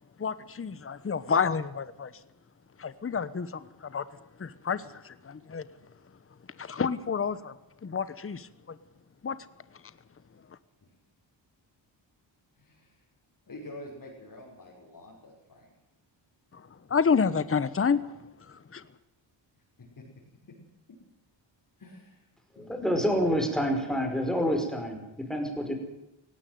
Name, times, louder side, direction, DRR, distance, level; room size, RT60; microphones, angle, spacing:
voice 1, 0.2-2.1 2.8-4.0 4.4-5.6 6.6-7.5 7.8-8.8 9.2-9.4 16.5-16.6 16.9-18.0 18.5-18.8, left 6 dB, 30° left, 1.1 m, -29 dB
voice 2, 12.6-13.0 13.5-15.7 20.0-20.1 20.5-20.6 21.8-22.3 22.6-22.8, left 1 dB, 45° left, 5.9 m, -47 dB
voice 3, 22.6-25.7, equal, ahead, 5.2 m, -28 dB
18.0 x 17.5 x 9.4 m
cardioid pair, 100°, 46 cm